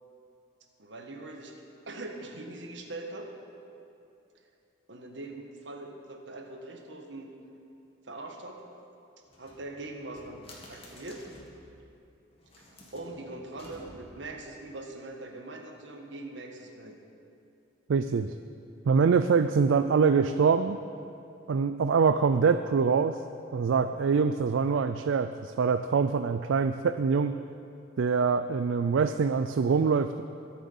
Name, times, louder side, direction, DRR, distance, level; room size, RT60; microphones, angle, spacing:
voice 1, 0.8-1.5 1.9-3.3 4.9-7.3 8.0-8.7 9.4-11.2 12.9-17.0, right 2 dB, 70° right, 3 dB, 1.5 m, -42 dB
sound 1, 9.3-11.6 12.3-14.3, left 1 dB, 30° left, 2.1 m, -52 dB
voice 2, 17.9-18.3 18.9-20.8 21.5-23.2 23.5-27.4 28.0-30.2, right 5 dB, 85° right, 10 dB, 0.4 m, -24 dB
22.0 x 7.4 x 5.5 m, 2.7 s
head